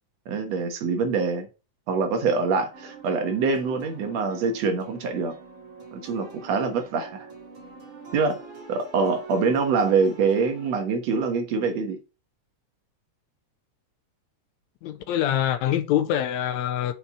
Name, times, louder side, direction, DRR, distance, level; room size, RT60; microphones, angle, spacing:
voice 1, 0.3-1.5 1.9-5.3 5.9-7.3 8.1-8.4 8.7-12.0, right 4 dB, 65° right, 2.3 m, -25 dB
sound 1, 2.7-10.8, right 3 dB, 45° right, 2.7 m, -44 dB
voice 2, 14.8-16.9, left 11 dB, 80° left, 1.8 m, -25 dB
6.8 x 5.5 x 4.4 m
omnidirectional pair, 3.4 m